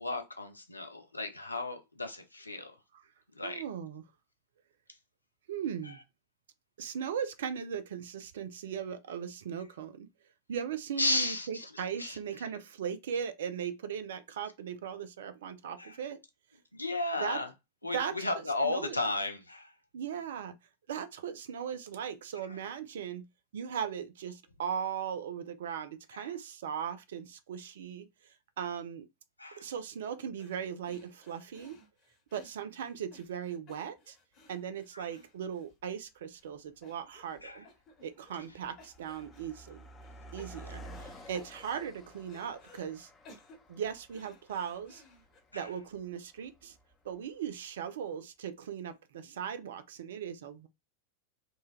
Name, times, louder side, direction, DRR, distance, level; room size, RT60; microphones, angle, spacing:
voice 1, 0.0-2.7 3.3-3.6 5.8-6.0 11.0-12.2 15.8-16.0 16.7-17.5 17.8-19.7 22.5-22.6 26.1-26.4 29.4-29.7 34.9-35.1 37.4-37.7 41.0-41.3 45.5-45.8, left 2 dB, 85° left, 0.5 m, -35 dB
voice 2, 3.4-4.0 5.5-6.0 6.8-10.1 10.5-16.2 17.2-17.4 17.9-18.1 18.6-19.0 19.9-20.6 20.9-23.2 23.5-28.1 28.6-29.1 29.6-31.8 32.3-34.2 34.5-37.7 38.0-39.9 40.3-43.1 43.7-45.0 45.5-46.8 47.0-50.7, right 8 dB, 60° right, 0.4 m, -38 dB
sound 1, 30.4-30.6 30.8-36.0 36.3-36.5 36.8-37.4 37.6-38.5 38.8-39.6 40.0-41.1 41.3-42.9 43.2-45.4, left 2 dB, 35° left, 1.0 m, -58 dB
Car passing by, 35.7-35.8 36.6-36.8 37.1-47.5, right 1 dB, 15° left, 0.6 m, -53 dB
3.0 x 2.1 x 2.2 m
figure-of-eight pair, 90°, 0 cm